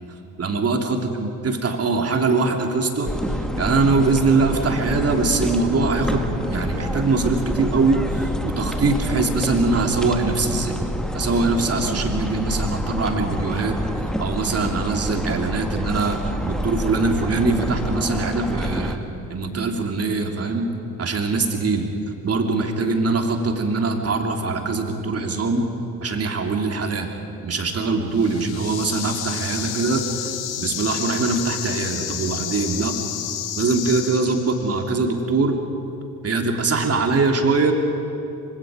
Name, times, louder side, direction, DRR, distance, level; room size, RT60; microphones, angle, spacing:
voice 1, 0.4-3.1 3.6-10.8 11.1-13.8 14.2-19.0 19.3-20.7 21.0-21.9 22.2-25.7 26.0-27.1 27.4-30.2 30.6-32.9 33.6-35.6 36.2-37.7, right 3 dB, 30° right, 3 dB, 3.2 m, -22 dB
sound 1, 3.0-19.0, equal, ahead, 1.7 m, -27 dB
sound 2, 28.1-34.8, left 11 dB, 50° left, 1.6 m, -31 dB
27.0 x 25.5 x 5.2 m, 2.9 s
figure-of-eight pair, 55°, 47 cm